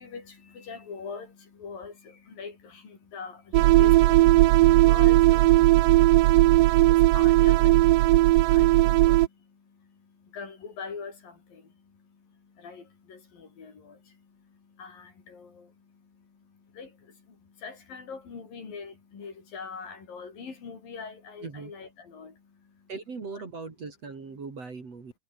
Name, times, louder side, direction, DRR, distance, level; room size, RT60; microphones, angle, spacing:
voice 1, 0.0-22.9 23.3-23.4 24.3-24.4, left 5 dB, 85° left, 6.9 m, -44 dB
sound 1, 3.5-9.3, right 18 dB, 80° right, 2.4 m, -18 dB
voice 2, 22.9-25.1, right 4 dB, 45° right, 4.9 m, -39 dB
omnidirectional pair, 3.9 m